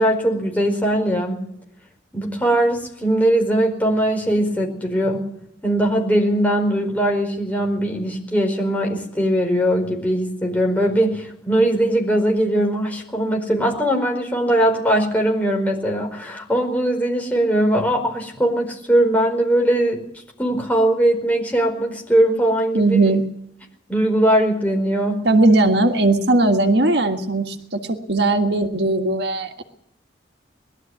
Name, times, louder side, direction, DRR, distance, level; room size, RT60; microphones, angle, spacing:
voice 1, 0.0-1.4 2.1-5.3 5.6-20.0 20.4-23.2 23.9-25.3, right 1 dB, 10° left, 1 dB, 4.8 m, -20 dB
voice 2, 22.7-23.2 25.2-29.6, right 2 dB, 65° right, 6 dB, 1.7 m, -18 dB
21.0 x 13.0 x 9.5 m, 0.77 s
head